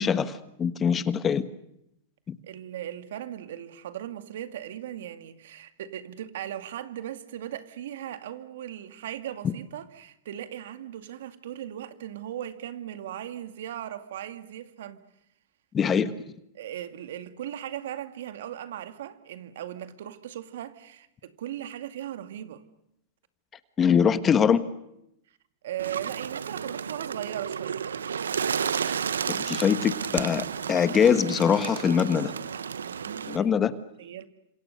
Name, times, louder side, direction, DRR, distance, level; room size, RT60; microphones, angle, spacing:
voice 1, 0.0-1.4 2.3-2.4 15.7-16.1 23.8-24.7 28.9-29.0 29.3-32.3 33.3-33.7, left 7 dB, 25° left, 1.4 m, -23 dB
voice 2, 2.5-15.0 16.0-16.1 16.5-22.6 25.6-27.8 32.8-33.6 34.0-34.3, right 11 dB, 70° right, 2.2 m, -38 dB
Bird, 25.8-33.4, right 7 dB, 90° right, 1.0 m, -32 dB
29.5 x 27.0 x 6.8 m
hypercardioid pair, 115°, 0 cm